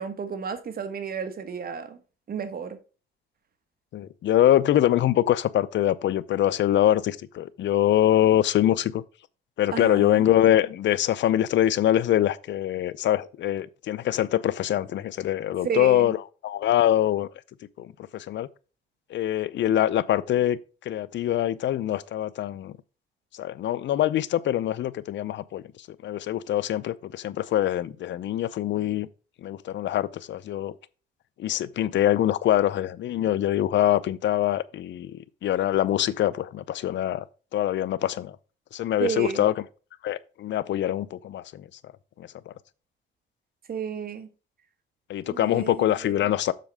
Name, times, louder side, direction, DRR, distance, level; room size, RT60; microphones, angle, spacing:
voice 1, 0.0-2.0 2.3-2.8 9.7-10.2 15.6-16.1 39.0-39.5 43.7-44.3 45.2-46.1, right 6 dB, 50° right, 1.4 m, -32 dB
voice 2, 3.9-9.0 9.6-17.3 17.8-18.5 19.1-20.6 20.9-22.7 23.4-25.6 26.0-29.1 29.4-30.7 31.4-37.2 37.5-38.3 38.7-39.6 40.0-41.6 42.2-42.5 45.1-46.5, left 12 dB, 65° left, 0.6 m, -24 dB
7.6 x 6.5 x 3.5 m
cardioid pair, 90°, 20 cm